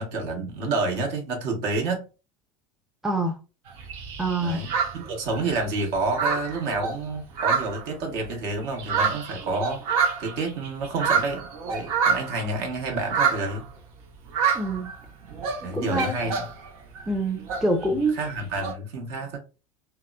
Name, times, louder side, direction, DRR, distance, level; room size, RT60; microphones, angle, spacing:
voice 1, 0.0-2.0 4.4-13.6 15.6-16.4 18.1-19.4, right 3 dB, 60° right, 1.1 m, -29 dB
voice 2, 3.0-3.4 4.2-4.7 14.5-14.9 15.7-16.2 17.1-18.1, right 2 dB, ahead, 0.5 m, -25 dB
sound 1, 3.7-5.7 5.9-8.3 8.6-12.5 12.9-13.7 14.3-15.0 15.3-16.7 17.0-18.7, right 6 dB, 75° right, 0.7 m, -27 dB
2.8 x 2.1 x 2.3 m
hypercardioid pair, 75°, 18 cm